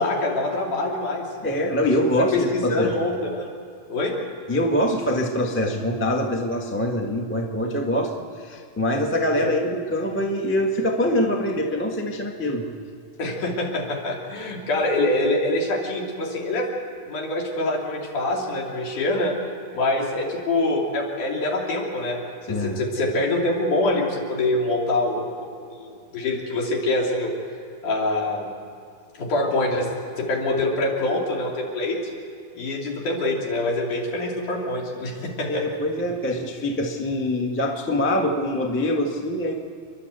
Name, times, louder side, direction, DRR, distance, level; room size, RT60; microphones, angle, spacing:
voice 1, 0.0-1.3 2.2-3.5 3.9-4.1 9.4-9.5 13.2-16.7 17.1-19.3 19.7-22.2 22.5-25.3 25.7-27.3 27.8-28.6 29.2-32.0 32.6-35.6, left 2 dB, 75° left, -1 dB, 4.4 m, -25 dB
voice 2, 1.4-2.9 4.5-8.1 8.4-12.7 22.5-22.8 35.5-39.5, left 1 dB, 10° left, 1 dB, 0.6 m, -24 dB
29.0 x 11.5 x 8.1 m, 2.3 s
omnidirectional pair, 3.6 m